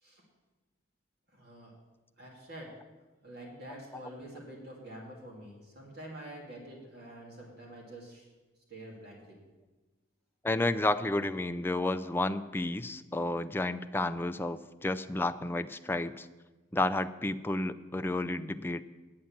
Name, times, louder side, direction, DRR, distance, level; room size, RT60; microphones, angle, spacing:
voice 1, 1.3-1.7 2.2-2.8 3.2-8.3 8.7-9.4, right 1 dB, 55° right, -2 dB, 2.5 m, -47 dB
voice 2, 10.4-16.3 16.7-18.8, left 2 dB, 10° left, 8 dB, 0.3 m, -31 dB
9.7 x 8.7 x 7.2 m, 1.2 s
head